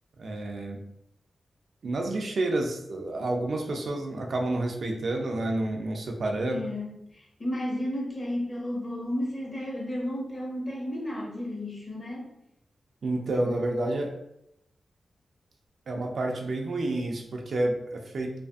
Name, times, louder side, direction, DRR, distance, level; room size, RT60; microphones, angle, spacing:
voice 1, 0.2-0.8 1.8-6.6 13.0-14.1 15.9-18.3, right 2 dB, 60° right, 1 dB, 0.4 m, -29 dB
voice 2, 6.4-12.3, left 1 dB, 30° left, -3 dB, 0.7 m, -33 dB
2.5 x 2.4 x 2.3 m, 0.78 s
wide cardioid pair, 125°, 0 cm